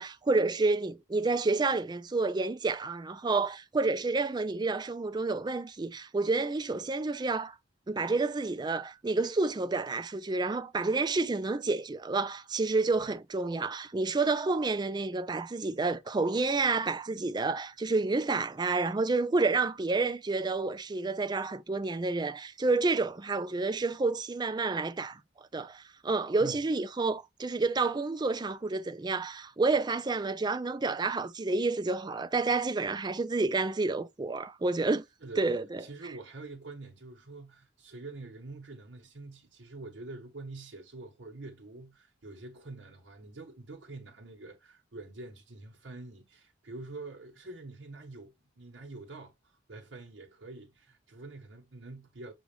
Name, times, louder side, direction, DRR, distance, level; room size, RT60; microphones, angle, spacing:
voice 1, 0.0-7.6 7.9-25.2 25.5-35.0 35.4-35.8, right 3 dB, 25° right, 0.4 m, -29 dB
voice 2, 35.8-52.3, right 2 dB, 70° right, 1.2 m, -46 dB
6.2 x 2.4 x 3.3 m
head